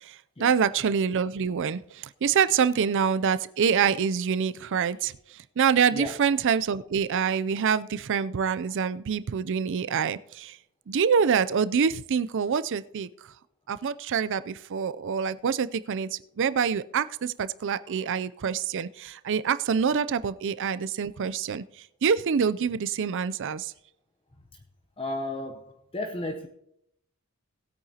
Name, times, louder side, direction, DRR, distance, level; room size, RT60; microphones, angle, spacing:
voice 1, 0.0-5.1 5.6-10.6 10.9-13.1 13.7-21.6 22.0-23.7, right 6 dB, 60° right, 0.4 m, -26 dB
voice 2, 25.0-26.5, left 1 dB, 25° left, 0.8 m, -34 dB
19.0 x 8.7 x 2.8 m
head